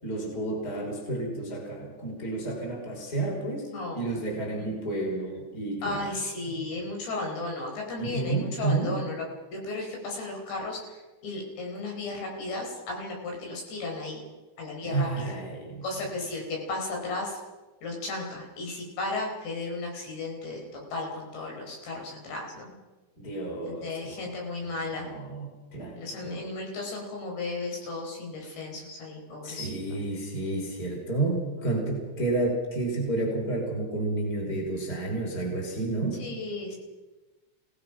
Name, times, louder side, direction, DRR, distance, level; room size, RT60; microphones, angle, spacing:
voice 1, 0.0-6.1 6.4-7.0 8.0-9.0 14.8-15.8 23.2-24.3 24.6-26.0 26.2-26.4 29.4-36.2, right 2 dB, 20° left, 0 dB, 5.1 m, -31 dB
voice 2, 3.7-4.2 4.5-4.7 5.8-9.2 9.5-14.2 14.6-15.3 15.8-17.4 17.8-22.7 23.7-25.1 26.0-30.0 36.2-36.8, left 2 dB, 60° left, 0 dB, 6.6 m, -35 dB
27.5 x 18.0 x 6.0 m, 1.2 s
omnidirectional pair, 5.7 m